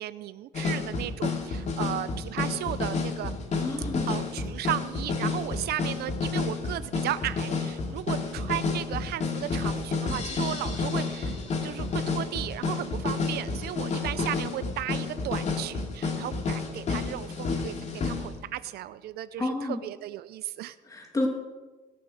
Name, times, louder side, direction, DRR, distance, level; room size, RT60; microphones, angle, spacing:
voice 1, 0.0-3.4 4.1-11.4 11.6-20.8, right 13 dB, 70° right, 14 dB, 0.6 m, -35 dB
sound 1, 0.5-18.4, left 4 dB, 45° left, 2.5 m, -30 dB
voice 2, 3.6-4.1 19.4-19.8 20.8-21.3, left 2 dB, 20° left, 1 dB, 2.8 m, -30 dB
20.0 x 7.1 x 6.4 m, 1.2 s
cardioid pair, 110°, 17 cm